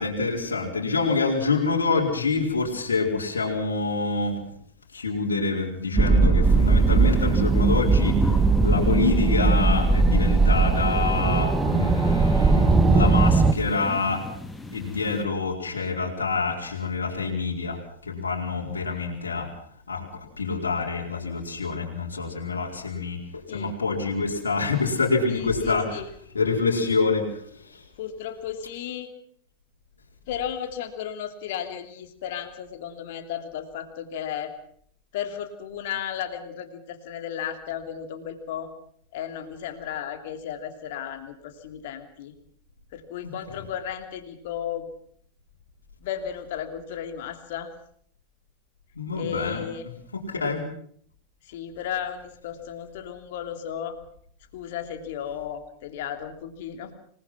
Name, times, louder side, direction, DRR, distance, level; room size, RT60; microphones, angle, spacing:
voice 1, 0.0-4.5 4.9-14.3 14.7-19.5 19.9-26.0 26.3-27.8 48.9-49.7 50.1-50.6, left 4 dB, 70° left, -1 dB, 4.5 m, -26 dB
sound 1, 6.0-13.5, right 4 dB, 15° right, 1.5 m, -19 dB
sound 2, 6.4-15.2, left 1 dB, 5° left, 2.1 m, -35 dB
voice 2, 25.3-26.1 28.0-29.1 30.3-34.5 35.1-38.7 39.1-42.3 42.9-44.9 46.0-47.7 49.1-49.8 51.4-53.9 54.5-56.9, left 9 dB, 50° left, 6 dB, 3.0 m, -34 dB
27.0 x 19.5 x 6.0 m, 0.63 s
figure-of-eight pair, 90°, 0 cm